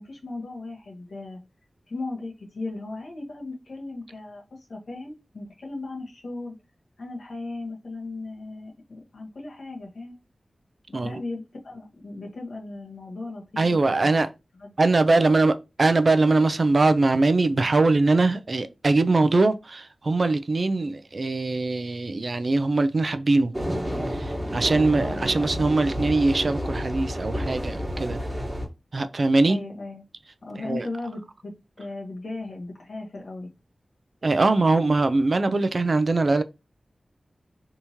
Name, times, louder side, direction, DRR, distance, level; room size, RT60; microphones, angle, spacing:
voice 1, 0.0-1.4 1.9-6.6 7.0-10.1 10.9-14.1 14.6-14.7 15.1-15.4 25.0-25.4 29.4-30.0 30.4-31.5 31.8-33.5, left 2 dB, 80° left, 1.2 m, -37 dB
voice 2, 13.6-14.3 14.8-23.5 24.1-28.2 28.9-29.6 30.6-30.9 34.2-36.4, right 3 dB, 55° right, 0.4 m, -22 dB
sound 1, 23.5-28.6, equal, 25° right, 1.3 m, -30 dB
3.5 x 2.9 x 2.7 m
wide cardioid pair, 70°, 0 cm